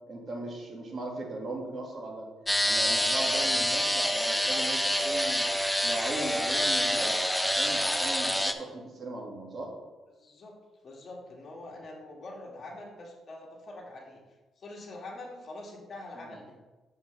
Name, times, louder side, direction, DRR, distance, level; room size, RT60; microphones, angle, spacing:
voice 1, 0.1-2.3 2.6-5.5 5.8-9.7 16.2-16.3, right 2 dB, 45° right, 0 dB, 2.0 m, -38 dB
sound 1, 2.5-8.5, equal, 5° left, 0.6 m, -27 dB
voice 2, 10.1-10.6 10.8-14.2 14.6-16.6, left 2 dB, 45° left, -1 dB, 2.0 m, -44 dB
7.5 x 6.9 x 3.4 m, 1.2 s
cardioid pair, 90°, 0 cm